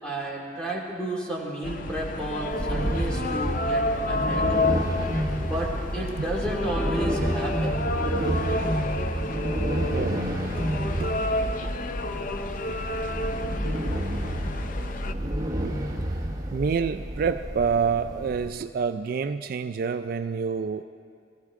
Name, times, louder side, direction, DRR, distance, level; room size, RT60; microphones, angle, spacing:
voice 1, 0.0-4.6 5.4-7.8, right 1 dB, 5° left, -4 dB, 2.4 m, -32 dB
sound 1, 1.6-15.1, left 2 dB, 45° left, 0.5 m, -30 dB
sound 2, 2.5-18.5, equal, 20° right, 1.2 m, -30 dB
voice 2, 8.2-8.6 9.9-10.3 10.6-11.1 11.6-11.7 15.6-15.7 16.5-20.8, right 6 dB, 50° right, 9 dB, 0.3 m, -28 dB
19.5 x 15.0 x 3.7 m, 2.3 s
head